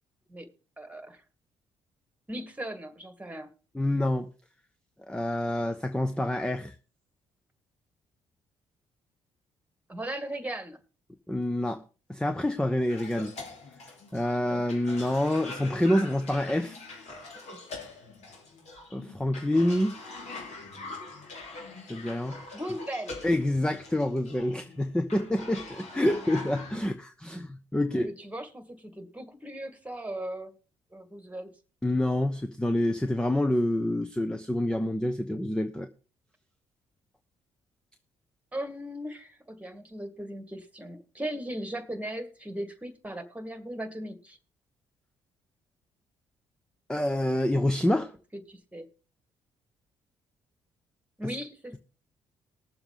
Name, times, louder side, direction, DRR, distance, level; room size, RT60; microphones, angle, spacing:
voice 1, 0.8-1.2 2.3-3.5 9.9-10.8 14.5-14.6 16.5-16.6 17.5-17.6 22.5-23.1 27.8-30.5 30.9-31.5 38.5-44.4 48.3-48.9 51.2-51.8, right 1 dB, 10° right, 9 dB, 2.0 m, -38 dB
voice 2, 3.7-4.3 5.1-6.8 11.3-11.8 12.1-13.3 14.1-16.8 18.9-20.0 21.9-22.4 23.2-28.1 31.8-35.9 46.9-48.1, left 1 dB, 5° left, 9 dB, 0.8 m, -27 dB
Cough, 12.9-26.9, left 3 dB, 55° left, 2.8 m, -43 dB
20.0 x 7.0 x 3.6 m, 0.36 s
figure-of-eight pair, 45°, 14 cm